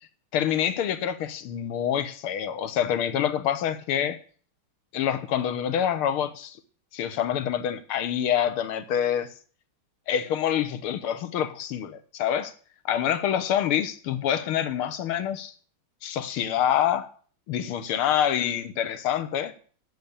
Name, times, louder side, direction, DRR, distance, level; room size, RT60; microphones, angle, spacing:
voice 1, 0.3-4.2 4.9-6.6 6.9-9.3 10.1-12.5 12.9-15.5 16.0-17.1 17.5-19.5, left 9 dB, 90° left, 1.9 m, -26 dB
8.8 x 8.0 x 8.6 m
omnidirectional pair, 2.3 m